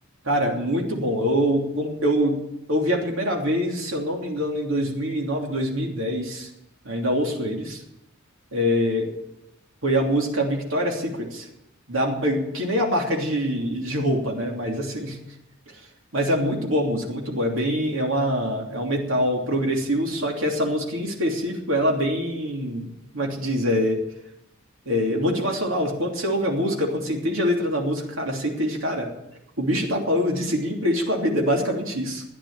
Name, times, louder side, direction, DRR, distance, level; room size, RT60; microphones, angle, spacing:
voice 1, 0.2-2.4 2.7-6.5 6.8-7.8 8.5-9.1 9.8-11.5 11.9-15.1 16.1-22.9 23.1-24.0 24.8-29.1 29.6-32.2, equal, 80° right, 0 dB, 3.1 m, -24 dB
13.5 x 10.0 x 8.8 m, 0.84 s
head